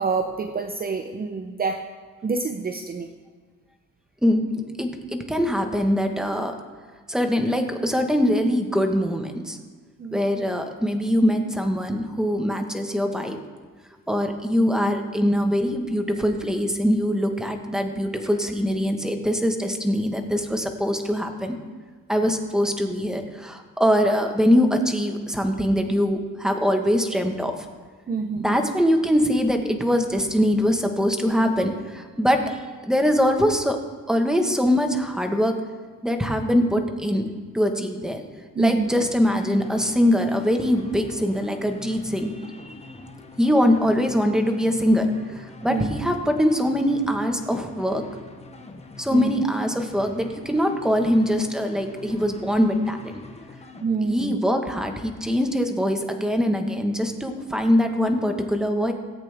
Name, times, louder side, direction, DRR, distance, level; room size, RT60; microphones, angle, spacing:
voice 1, 0.0-1.8 2.2-3.1 10.0-10.4 14.6-14.7 28.1-28.6 38.6-38.9 45.7-45.9 49.1-49.3 53.8-54.4, right 4 dB, 30° right, 6 dB, 0.7 m, -27 dB
voice 2, 4.2-6.5 7.1-9.6 10.1-13.4 14.1-21.5 22.1-27.7 28.4-33.8 34.1-35.6 36.0-37.3 37.5-38.2 38.6-42.3 42.6-42.7 43.4-48.0 49.0-53.0 54.0-58.9, equal, ahead, 5 dB, 1.3 m, -23 dB
sound 1, 39.0-53.9, left 2 dB, 20° left, 1.3 m, -44 dB
17.5 x 8.3 x 3.5 m, 1.5 s
cardioid pair, 90°, 30 cm